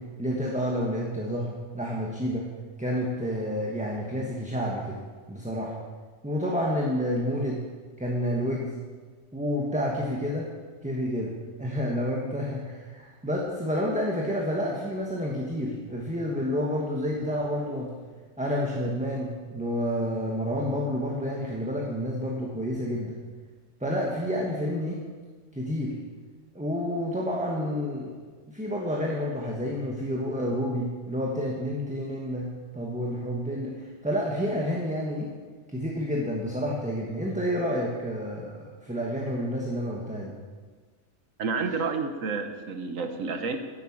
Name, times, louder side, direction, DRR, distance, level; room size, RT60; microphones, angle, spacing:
voice 1, 0.0-1.5 1.7-2.5 2.8-5.0 5.3-5.7 6.2-7.6 8.0-8.7 9.3-10.5 10.8-11.3 11.6-17.9 18.4-23.2 23.8-25.0 25.5-25.9 26.5-28.1 28.5-35.3 35.7-40.3, equal, 5° right, -2 dB, 1.3 m, -29 dB
voice 2, 41.4-43.6, right 4 dB, 75° right, 7 dB, 1.5 m, -30 dB
11.0 x 8.7 x 7.3 m, 1.4 s
omnidirectional pair, 1.4 m